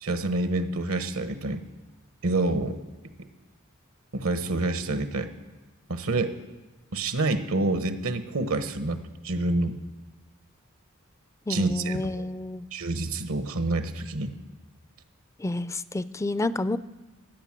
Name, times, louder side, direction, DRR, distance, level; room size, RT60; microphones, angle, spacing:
voice 1, 0.0-1.6 2.2-2.8 4.1-5.3 5.9-6.3 6.9-9.8 11.5-12.0 12.7-14.3, right 2 dB, 80° right, 9 dB, 1.2 m, -27 dB
voice 2, 11.5-12.6 15.4-16.8, left 2 dB, 15° left, 15 dB, 0.4 m, -29 dB
15.0 x 9.1 x 7.5 m, 1.2 s
head